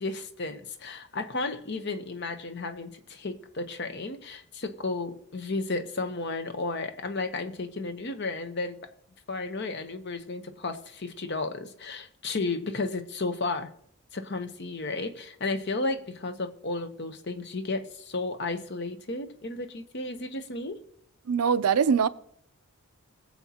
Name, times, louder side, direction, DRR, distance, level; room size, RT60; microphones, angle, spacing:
voice 1, 0.0-8.8 9.3-13.7 14.1-20.8, left 3 dB, 50° left, 9 dB, 0.9 m, -33 dB
voice 2, 21.3-22.1, right 6 dB, 85° right, 14 dB, 0.5 m, -22 dB
21.5 x 7.3 x 2.9 m, 0.68 s
head